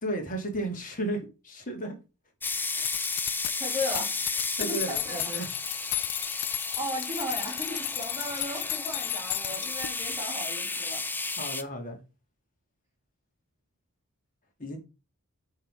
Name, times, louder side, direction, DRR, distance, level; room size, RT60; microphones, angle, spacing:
voice 1, 0.0-2.0 4.6-5.5 11.4-12.0 14.6-14.8, right 1 dB, 35° left, 2.6 m, -33 dB
sound 1, 2.4-10.2, left 17 dB, 85° left, 0.5 m, -35 dB
sound 2, 2.4-11.6, left 3 dB, 10° left, 0.5 m, -33 dB
voice 2, 3.5-4.3 4.6-5.2 6.4-11.0, left 1 dB, 15° right, 2.7 m, -36 dB
8.6 x 3.9 x 5.1 m
head